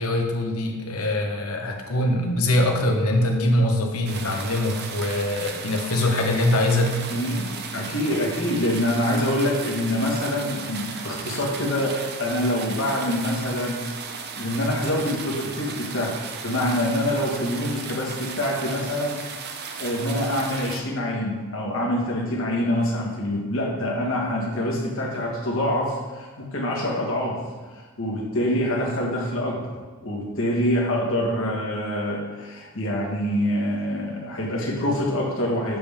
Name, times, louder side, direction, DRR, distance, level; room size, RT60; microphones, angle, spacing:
voice 1, 0.0-7.0, left 1 dB, 75° left, 2 dB, 1.2 m, -23 dB
sound 1, 4.0-20.8, right 5 dB, 45° right, 0.6 m, -36 dB
voice 2, 7.1-13.9 14.4-19.2 19.8-27.4 27.7-29.7 30.0-35.8, left 1 dB, 60° left, -2 dB, 1.6 m, -25 dB
7.7 x 7.0 x 3.6 m, 1.3 s
head